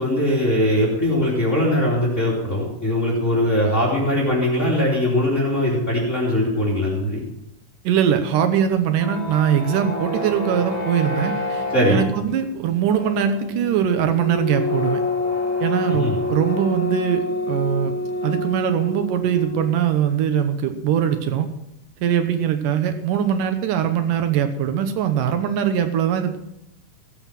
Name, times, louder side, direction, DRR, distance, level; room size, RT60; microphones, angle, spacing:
voice 1, 0.0-7.2 11.7-12.1 15.9-16.1, left 1 dB, 20° left, -5 dB, 3.2 m, -21 dB
voice 2, 7.8-11.6 11.9-15.0 15.6-17.9 18.2-21.5 22.0-26.4, right 9 dB, 85° right, 8 dB, 2.6 m, -21 dB
sound 1, 8.8-20.0, left 2 dB, 40° right, 7.9 m, -27 dB
17.0 x 8.1 x 5.9 m, 0.80 s
omnidirectional pair, 3.7 m